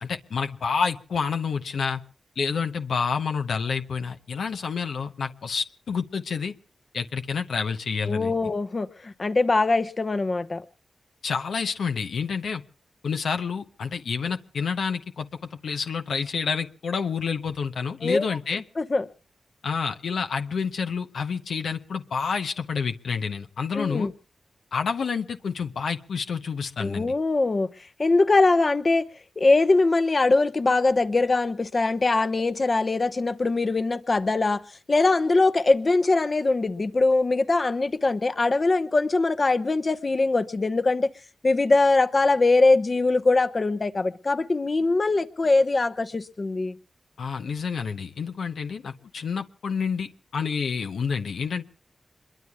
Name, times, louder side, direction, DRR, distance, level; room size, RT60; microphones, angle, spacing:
voice 1, 0.0-2.0 2.4-6.5 6.9-8.3 11.2-12.6 13.0-18.6 19.6-24.1 24.7-27.1 47.2-51.6, left 5 dB, 85° left, 0.8 m, -29 dB
voice 2, 8.1-10.6 18.0-18.2 18.8-19.0 23.7-24.1 26.8-27.7 28.0-29.0 29.4-34.6 34.9-41.1 41.4-46.8, left 3 dB, 50° left, 1.0 m, -22 dB
26.5 x 22.0 x 2.3 m
cardioid pair, 45°, 0 cm